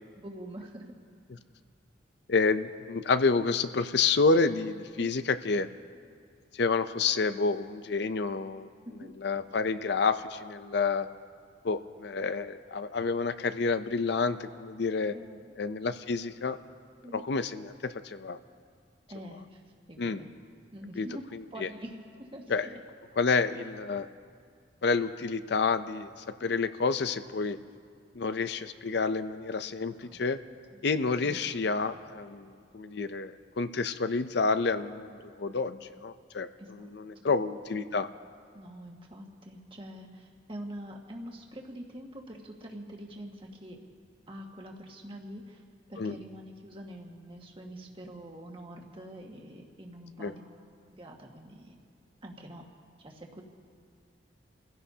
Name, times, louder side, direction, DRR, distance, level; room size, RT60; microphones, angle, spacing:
voice 1, 0.2-0.9 5.0-5.1 8.9-9.1 15.1-15.6 17.0-17.2 19.1-19.6 19.9-20.3 20.7-22.7 30.0-30.2 31.2-31.4 36.6-37.3 38.5-43.8 44.3-45.6 45.9-51.8 52.2-52.7 53.0-53.4, equal, 30° right, 0 dB, 1.7 m, -45 dB
voice 2, 2.3-5.7 6.5-8.7 9.2-11.1 11.6-15.1 15.6-16.6 17.1-18.4 20.0-20.2 21.0-21.1 21.6-21.7 22.5-22.7 23.2-24.1 24.8-26.1 26.4-27.6 28.1-30.4 30.8-38.1 46.0-46.1 50.2-50.3, left 4 dB, 60° left, 11 dB, 0.5 m, -29 dB
30.0 x 16.0 x 2.8 m, 2.1 s
head